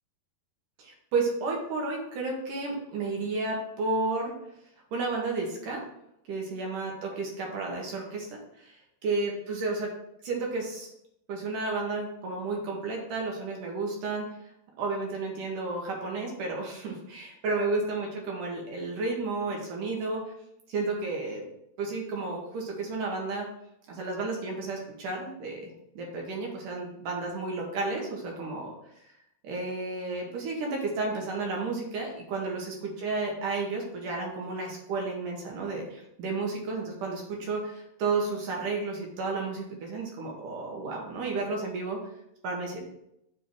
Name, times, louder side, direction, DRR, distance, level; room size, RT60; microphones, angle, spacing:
voice 1, 0.8-4.4 4.9-5.8 6.3-9.9 10.2-10.9 11.3-14.3 14.8-20.3 20.7-21.4 21.8-23.5 23.9-28.8 29.4-42.0 42.4-42.8, right 3 dB, 65° right, 0 dB, 2.3 m, -32 dB
7.3 x 3.5 x 4.6 m, 0.78 s
omnidirectional pair, 4.7 m